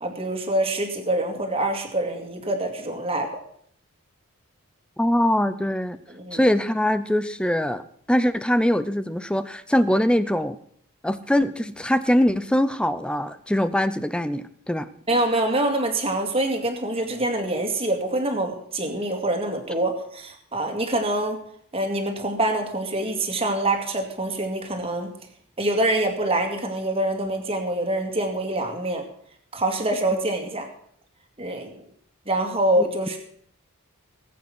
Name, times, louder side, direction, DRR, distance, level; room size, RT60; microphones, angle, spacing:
voice 1, 0.0-3.3 6.1-6.4 15.1-21.4 21.7-25.1 25.6-29.0 29.5-30.7 31.4-31.7 32.3-33.2, right 1 dB, 25° right, 4 dB, 2.3 m, -25 dB
voice 2, 5.0-6.0 6.3-7.8 8.1-10.6 11.0-14.9 32.8-32.9, equal, 5° left, 13 dB, 0.5 m, -22 dB
19.5 x 8.4 x 6.1 m, 0.65 s
head